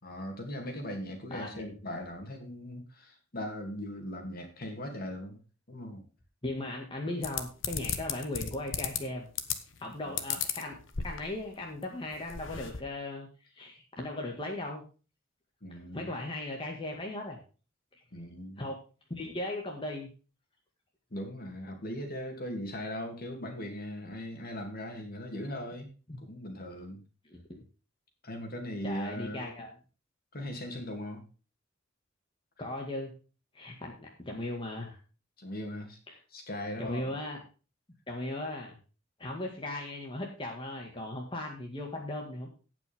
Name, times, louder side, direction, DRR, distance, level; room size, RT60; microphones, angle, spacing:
voice 1, 0.0-5.4 5.7-6.0 10.0-10.2 15.6-16.1 18.1-18.6 21.1-25.9 26.2-27.0 28.2-29.5 30.3-31.2 35.4-36.0 36.3-37.2, left 1 dB, 50° left, 4 dB, 2.9 m, -39 dB
voice 2, 1.3-1.7 6.4-9.3 9.8-10.8 11.0-13.3 13.5-14.8 15.7-17.4 18.6-18.8 19.1-20.1 26.1-26.2 27.3-27.6 28.8-29.7 32.6-33.1 33.5-35.0 36.8-37.4 38.1-38.8 39.2-42.5, left 1 dB, 25° left, 0 dB, 2.0 m, -37 dB
sound 1, 7.2-9.0 9.4-9.8 10.2-11.5 11.8-11.9 12.1-12.8, left 8 dB, 70° left, 1.3 m, -34 dB
18.0 x 6.0 x 3.6 m, 0.34 s
head